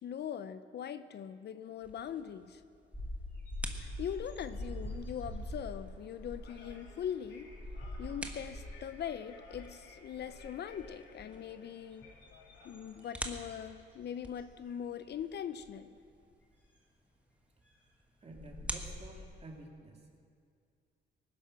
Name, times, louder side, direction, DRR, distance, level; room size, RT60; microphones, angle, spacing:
voice 1, 0.0-2.6 3.8-7.5 8.0-12.1 12.6-15.9, left 9 dB, 60° left, 12 dB, 0.6 m, -41 dB
sound 1, 1.8-19.6, right 1 dB, 5° right, 1.5 m, -50 dB
sound 2, 2.9-9.0 9.3-9.7 10.1-11.0 11.7-13.9 14.3-14.6 15.6-15.7 17.9-18.0 18.3-19.2, left 1 dB, 10° left, 5.1 m, -44 dB
sound 3, 3.9-13.3, left 3 dB, 80° left, 2.6 m, -59 dB
voice 2, 18.2-20.1, right 2 dB, 30° right, 0 dB, 2.6 m, -50 dB
18.5 x 10.5 x 6.2 m, 2.3 s
cardioid pair, 90°, 20 cm